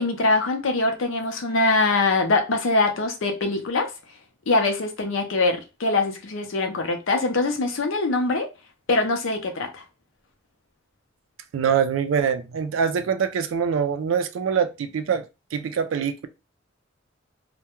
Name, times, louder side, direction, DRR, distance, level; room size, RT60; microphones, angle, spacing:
voice 1, 0.0-3.9 4.5-8.5 8.9-9.8, left 3 dB, 80° left, 0.6 m, -23 dB
voice 2, 11.5-16.3, right 7 dB, 85° right, 0.4 m, -24 dB
2.2 x 2.1 x 2.9 m
head